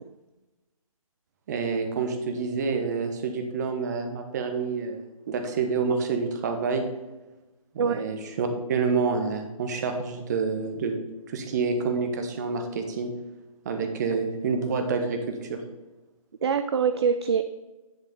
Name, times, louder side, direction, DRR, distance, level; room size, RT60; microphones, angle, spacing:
voice 1, 1.5-6.8 7.7-11.0 11.3-13.1 13.6-15.6, right 4 dB, 30° right, 5 dB, 1.1 m, -28 dB
voice 2, 16.4-17.4, right 6 dB, 45° right, 9 dB, 0.5 m, -24 dB
10.5 x 5.5 x 3.8 m, 1.1 s
figure-of-eight pair, 150°, 18 cm